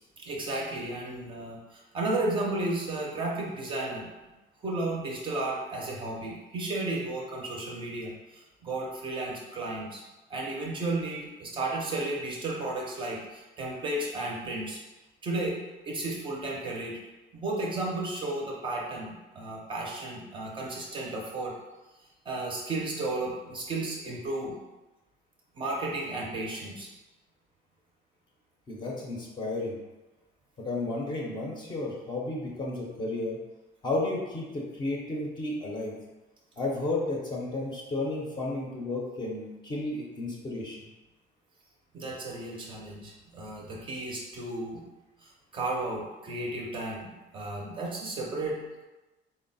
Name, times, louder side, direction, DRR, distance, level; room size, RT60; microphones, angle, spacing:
voice 1, 0.2-4.1 4.6-10.0 10.3-14.8 15.2-17.0 17.3-21.5 22.3-24.6 25.6-26.9 41.9-44.9 45.2-48.6, right 2 dB, 25° right, -2 dB, 0.5 m, -33 dB
voice 2, 28.7-29.8 30.6-33.4 33.8-36.0 36.6-40.9, left 2 dB, 25° left, -2 dB, 0.6 m, -32 dB
3.8 x 2.0 x 3.9 m, 1.1 s
cardioid pair, 175°, 19 cm